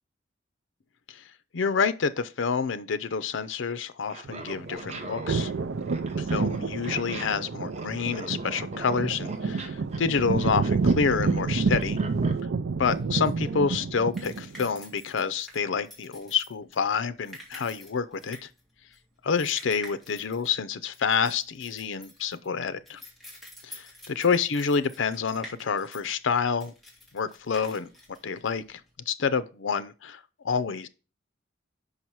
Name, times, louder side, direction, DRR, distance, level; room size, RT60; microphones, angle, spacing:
voice 1, 1.5-5.5 6.2-12.0 12.8-18.4 19.2-23.0 23.6-26.7 27.1-27.9 28.2-28.8 29.1-30.2 30.4-30.9, left 5 dB, 90° left, 0.5 m, -28 dB
Laughter, 4.1-12.4, right 2 dB, 35° right, 0.8 m, -42 dB
sound 1, 4.2-14.7, right 4 dB, 80° right, 0.5 m, -29 dB
sound 2, 12.2-28.9, equal, ahead, 1.9 m, -49 dB
5.7 x 5.4 x 4.6 m
head